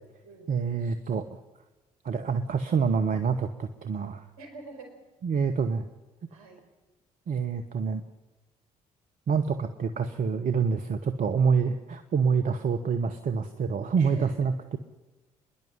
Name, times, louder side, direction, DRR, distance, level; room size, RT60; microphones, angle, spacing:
voice 1, 0.5-1.2 2.0-4.2 5.2-5.8 7.3-8.0 9.3-14.8, right 5 dB, 50° right, 9 dB, 1.1 m, -27 dB
voice 2, 4.4-5.0 6.3-6.6 14.0-14.3, right 3 dB, 65° right, 4 dB, 5.1 m, -45 dB
25.5 x 11.0 x 10.0 m, 1.2 s
figure-of-eight pair, 45°, 19 cm